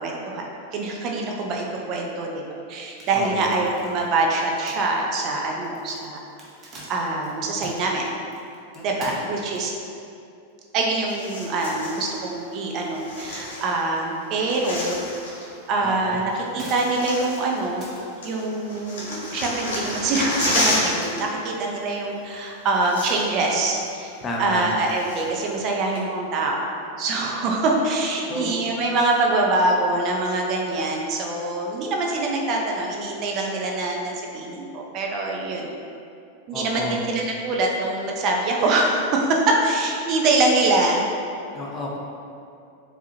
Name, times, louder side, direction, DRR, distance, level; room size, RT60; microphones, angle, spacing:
voice 1, 0.0-2.4 2.7-6.2 6.9-8.1 8.8-9.7 10.7-15.0 15.7-17.9 18.2-24.1 24.4-35.7 36.5-41.0, right 2 dB, 40° right, 0 dB, 0.5 m, -24 dB
sound 1, 2.7-9.9 10.5-10.6 11.0-11.1 11.4-12.3 12.6-13.6 14.0-14.1 15.4-15.5 15.9-18.5, right 2 dB, 25° right, 0.9 m, -44 dB
voice 2, 3.1-3.7 8.7-9.2 15.8-16.2 24.2-24.7 28.3-28.5 36.5-37.0 41.5-42.0, left 1 dB, 25° left, -2 dB, 0.6 m, -31 dB
sound 2, 11.1-12.1 12.9-14.0 14.2-15.5 16.3-16.4 16.8-17.9 18.2-21.2 21.5-21.7 22.4-22.5 22.7-23.5 23.9-24.0 24.5-25.4 25.9-26.0, left 1 dB, 85° left, 1.2 m, -30 dB
4.9 x 2.7 x 2.7 m, 2.6 s
supercardioid pair, 135°, 0 cm